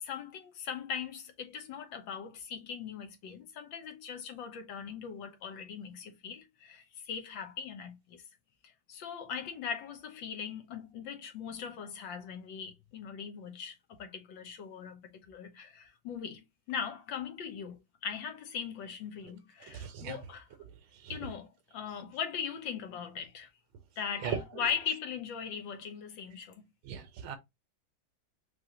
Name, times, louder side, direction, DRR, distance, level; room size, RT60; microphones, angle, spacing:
voice 1, 0.0-8.2 8.9-20.5 21.1-23.5 24.0-26.6, left 7 dB, 70° left, 1.6 m, -40 dB
voice 2, 19.6-20.2 24.2-24.4 26.8-27.4, right 7 dB, 80° right, 1.7 m, -37 dB
6.2 x 2.6 x 2.9 m
omnidirectional pair, 2.2 m